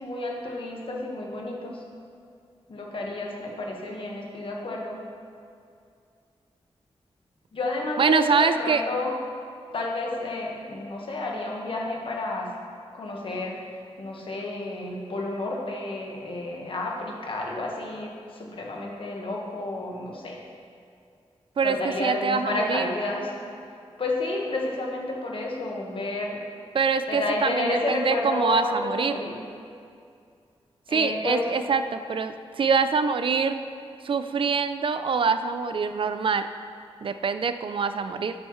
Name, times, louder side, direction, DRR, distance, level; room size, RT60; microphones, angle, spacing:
voice 1, 0.0-1.8 2.7-5.0 7.5-9.1 9.7-12.5 12.9-13.6 14.0-20.4 21.6-23.3 24.0-26.4 27.1-29.4 30.9-31.5, left 2 dB, 55° left, -1 dB, 1.5 m, -31 dB
voice 2, 8.0-8.8 21.6-22.9 26.7-29.2 30.9-33.6 34.0-36.5 37.0-38.3, right 5 dB, 55° right, 10 dB, 0.4 m, -24 dB
12.0 x 7.9 x 3.2 m, 2.3 s
wide cardioid pair, 105°, 11 cm